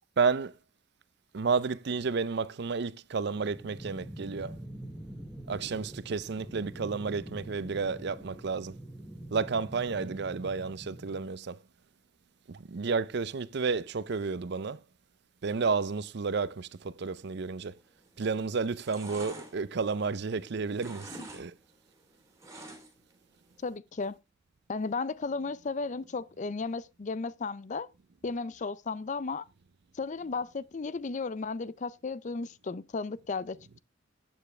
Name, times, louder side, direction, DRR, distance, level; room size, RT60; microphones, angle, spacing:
voice 1, 0.2-0.5 1.3-4.6 5.5-8.8 9.3-11.6 12.5-14.8 15.4-17.7 18.2-21.5, right 5 dB, 60° right, 0.5 m, -31 dB
sound 1, 3.3-11.3, right 1 dB, 5° left, 1.3 m, -45 dB
sound 2, 18.0-18.3 18.6-20.4 20.7-21.4 21.7-23.1 23.5-23.6, right 1 dB, 15° right, 3.2 m, -46 dB
voice 2, 23.6-24.2 24.7-27.9 28.2-29.5 29.9-33.8, left 4 dB, 40° left, 0.5 m, -34 dB
11.5 x 9.0 x 3.2 m
head